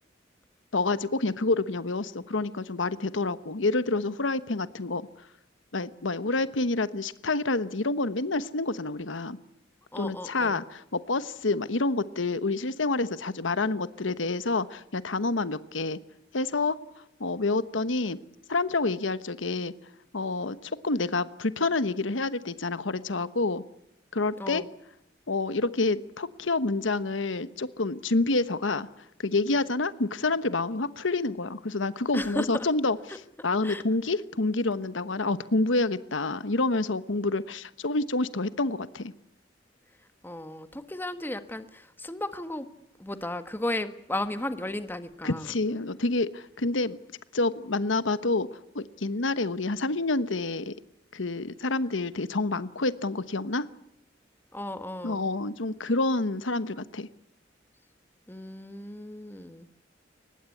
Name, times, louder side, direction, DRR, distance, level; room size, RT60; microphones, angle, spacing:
voice 1, 0.7-5.1 5.7-9.4 10.0-16.0 16.3-16.8 17.2-18.2 18.5-19.7 20.1-23.6 24.1-24.6 25.3-28.9 29.2-39.1 45.2-47.0 47.3-50.7 51.1-53.7 55.0-57.1, left 3 dB, 90° left, 14 dB, 1.2 m, -28 dB
voice 2, 9.9-10.6 24.4-24.7 32.1-32.7 33.6-33.8 40.2-42.7 43.0-45.5 54.5-55.2 58.3-59.7, left 1 dB, 10° left, 10 dB, 1.5 m, -34 dB
24.0 x 20.0 x 8.5 m, 0.81 s
head